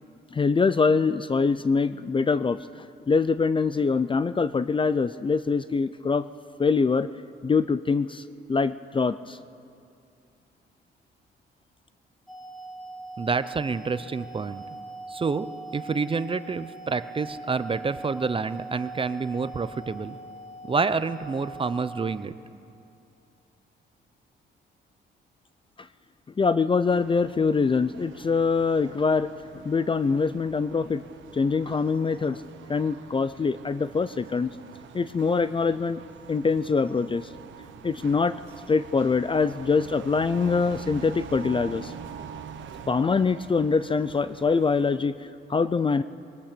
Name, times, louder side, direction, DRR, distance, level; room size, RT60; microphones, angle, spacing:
voice 1, 0.3-6.3 6.6-7.1 7.4-9.4 25.8-25.9 26.4-29.3 29.6-31.0 31.3-32.4 32.7-34.5 34.9-36.0 36.3-37.3 37.8-38.4 38.7-41.9 42.9-46.0, left 4 dB, 25° left, 14 dB, 0.5 m, -24 dB
sound 1, 12.3-22.2, right 2 dB, ahead, 1.6 m, -41 dB
voice 2, 13.2-14.6 15.1-15.5 15.7-20.2 20.7-22.3, right 4 dB, 25° right, 13 dB, 0.7 m, -28 dB
sound 2, 26.9-45.0, right 8 dB, 70° right, 1.1 m, -44 dB
21.0 x 18.5 x 6.8 m, 2.5 s
cardioid pair, 90°, 20 cm